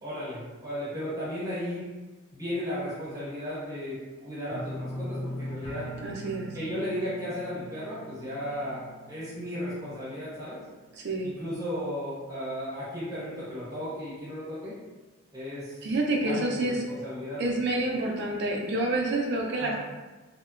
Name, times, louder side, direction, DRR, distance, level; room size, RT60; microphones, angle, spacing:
voice 1, 0.0-1.9 2.3-5.9 6.5-10.6 11.2-14.7 15.3-15.9 16.2-17.4 19.6-19.7, equal, 15° right, -10 dB, 0.9 m, -35 dB
sound 1, 4.5-11.4 11.7-12.2 12.6-12.7, equal, 30° left, 0.6 m, -41 dB
voice 2, 6.0-6.5 10.9-11.4 15.8-16.8 17.4-19.7, right 2 dB, 55° right, -1 dB, 0.4 m, -28 dB
2.8 x 2.1 x 2.4 m, 1.2 s
head